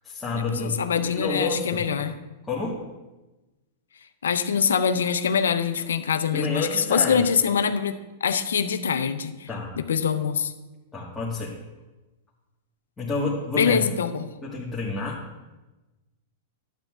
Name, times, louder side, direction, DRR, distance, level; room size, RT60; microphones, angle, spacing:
voice 1, 0.0-1.9 2.5-2.8 6.3-7.3 9.5-9.8 10.9-11.5 13.0-13.8 14.4-15.2, left 3 dB, 10° left, -6 dB, 1.6 m, -29 dB
voice 2, 0.6-2.2 4.2-7.9 8.2-9.5 9.9-10.5 13.6-14.3, left 7 dB, 85° left, 10 dB, 0.6 m, -24 dB
11.5 x 9.0 x 2.4 m, 1.1 s
hypercardioid pair, 120°, 0 cm